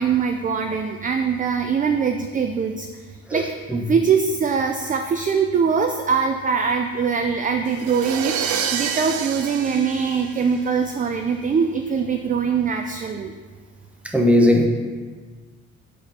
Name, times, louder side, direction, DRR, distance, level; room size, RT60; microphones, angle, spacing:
voice 1, 0.0-2.9 3.3-13.3, right 6 dB, 30° right, 5 dB, 0.4 m, -22 dB
sound 1, 7.7-10.9, right 8 dB, 75° right, 0.6 m, -28 dB
voice 2, 14.0-14.7, left 1 dB, 5° right, 1 dB, 0.9 m, -17 dB
5.0 x 4.1 x 5.6 m, 1.5 s
cardioid pair, 90°, 30 cm